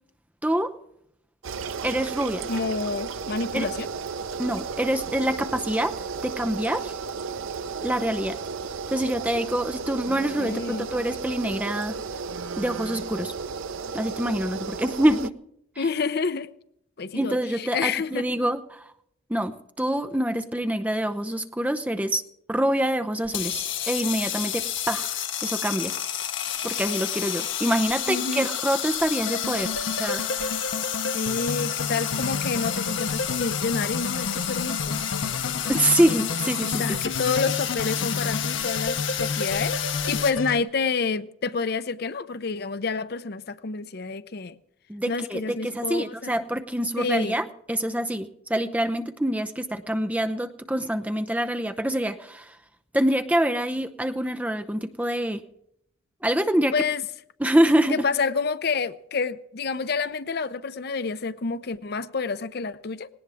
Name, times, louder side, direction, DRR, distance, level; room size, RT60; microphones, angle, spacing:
sound 1, 1.4-15.3, right 5 dB, 75° right, 0.6 m, -34 dB
voice 1, 1.8-2.5 3.5-3.7 4.4-6.0 6.2-6.9 7.8-8.4 8.9-12.0 12.6-13.3 13.9-15.3 15.8-15.9 17.1-18.9 19.3-22.2 22.5-25.9 26.6-30.2 35.7-37.0 44.9-52.5 52.9-55.4 56.2-56.7 57.4-58.0, right 1 dB, 5° right, 0.7 m, -26 dB
voice 2, 2.5-3.9 10.1-10.9 15.8-16.5 17.0-18.2 28.1-28.5 31.1-35.0 36.6-39.8 40.1-44.6 45.1-46.4 47.0-47.4 56.7-57.0 57.9-63.1, left 4 dB, 50° left, 0.6 m, -28 dB
sound 2, 23.2-40.3, left 10 dB, 65° left, 1.3 m, -30 dB
sound 3, 29.2-40.6, left 3 dB, 85° left, 0.8 m, -31 dB
18.5 x 18.0 x 3.5 m
head